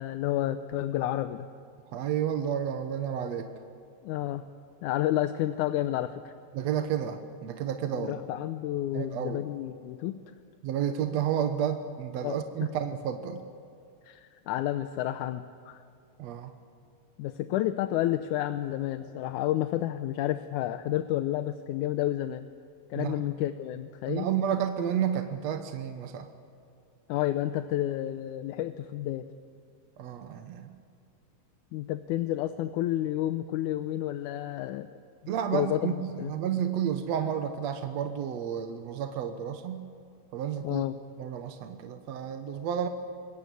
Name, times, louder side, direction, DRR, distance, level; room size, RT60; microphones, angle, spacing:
voice 1, 0.0-1.5 4.0-4.5 4.8-6.3 7.9-10.2 12.2-12.4 14.0-15.8 17.2-22.4 22.9-24.3 27.1-29.3 31.7-34.9 35.5-36.3 40.6-41.0, left 13 dB, 75° left, 10 dB, 2.0 m, -30 dB
voice 2, 1.9-3.5 6.5-8.2 8.9-9.4 10.6-13.4 16.2-16.5 22.9-23.3 24.1-26.3 30.0-30.8 35.3-39.9 40.3-40.8 41.2-42.9, right 9 dB, 65° right, 7 dB, 2.0 m, -31 dB
26.5 x 21.5 x 8.3 m, 2.4 s
omnidirectional pair, 3.8 m